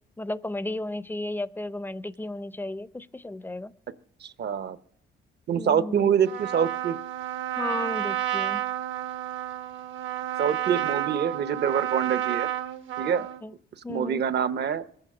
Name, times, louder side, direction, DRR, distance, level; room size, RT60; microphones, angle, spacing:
voice 1, 0.2-3.7 5.6-6.1 7.6-8.6 13.4-13.5 13.8-14.2, left 2 dB, 10° left, 16 dB, 0.5 m, -34 dB
voice 2, 4.2-4.8 5.5-7.0 10.4-12.5 13.0-13.3 13.9-14.9, right 8 dB, 60° right, 13 dB, 0.8 m, -25 dB
Trumpet, 6.3-13.4, right 11 dB, 75° right, 1.1 m, -31 dB
20.5 x 8.9 x 6.0 m, 0.64 s
cardioid pair, 90°, 20 cm